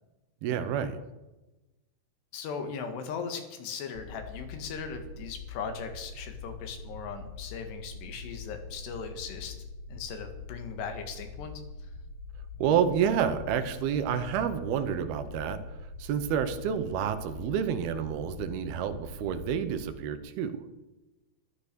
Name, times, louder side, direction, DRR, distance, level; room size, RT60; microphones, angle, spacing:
voice 1, 0.4-1.0 12.6-20.6, right 8 dB, 75° right, 9 dB, 2.8 m, -29 dB
voice 2, 2.3-9.5 9.9-11.6, left 6 dB, 90° left, 6 dB, 3.9 m, -38 dB
sound 1, 4.0-19.8, left 3 dB, 55° left, 2.2 m, -44 dB
13.0 x 12.5 x 6.8 m, 1.0 s
omnidirectional pair, 4.7 m